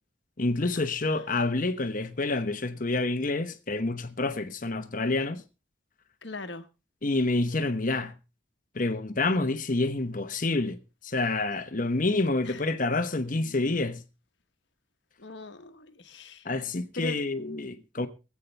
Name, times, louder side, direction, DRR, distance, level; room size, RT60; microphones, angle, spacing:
voice 1, 0.4-5.4 7.0-8.1 8.7-10.8 11.0-14.0 16.4-18.1, left 2 dB, 45° left, 1.0 m, -28 dB
voice 2, 6.2-6.7 12.4-12.6 15.2-16.5 16.9-17.2, left 2 dB, 60° left, 1.2 m, -40 dB
24.5 x 8.4 x 3.3 m
head